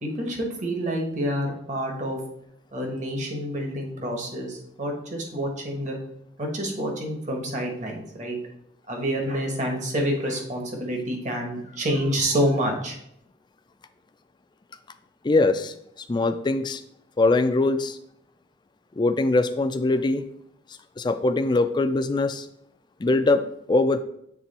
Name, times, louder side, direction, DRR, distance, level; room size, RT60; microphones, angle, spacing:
voice 1, 0.0-2.2 2.7-6.0 6.4-8.4 8.9-13.0, equal, 45° right, 1 dB, 1.3 m, -28 dB
voice 2, 15.2-15.7 16.1-16.8 17.2-18.0 19.0-20.2 21.0-22.5 23.0-23.4 23.7-24.0, left 2 dB, 25° left, 10 dB, 0.4 m, -22 dB
7.4 x 3.4 x 4.2 m, 0.75 s
head